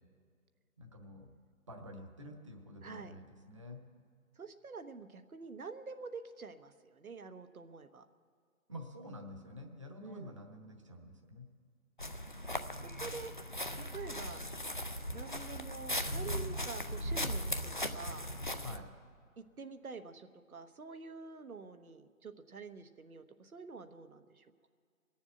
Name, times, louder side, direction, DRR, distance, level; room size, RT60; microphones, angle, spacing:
voice 1, 0.8-1.4 1.7-3.8 8.7-11.5 18.6-18.9, left 1 dB, 20° right, 4 dB, 0.9 m, -49 dB
voice 2, 2.8-3.1 4.4-8.0 10.0-10.4 13.0-13.3 13.7-14.4 15.1-18.3 19.4-24.7, right 4 dB, 85° right, 9 dB, 1.2 m, -47 dB
sound 1, 12.0-18.8, left 1 dB, 40° left, 0.4 m, -38 dB
21.0 x 7.2 x 8.9 m, 2.2 s
figure-of-eight pair, 165°, 42 cm